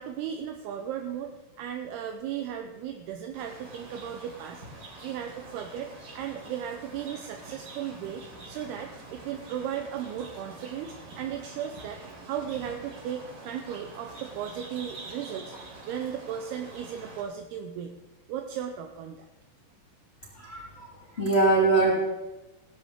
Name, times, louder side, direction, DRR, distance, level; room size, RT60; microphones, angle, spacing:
voice 1, 0.0-18.0 18.3-19.3, right 9 dB, 80° right, 5 dB, 2.3 m, -36 dB
sound 1, 3.3-17.2, right 2 dB, 45° right, 5.1 m, -46 dB
voice 2, 20.3-22.0, right 3 dB, 20° left, -5 dB, 2.0 m, -23 dB
16.5 x 13.0 x 3.6 m, 1.1 s
omnidirectional pair, 5.3 m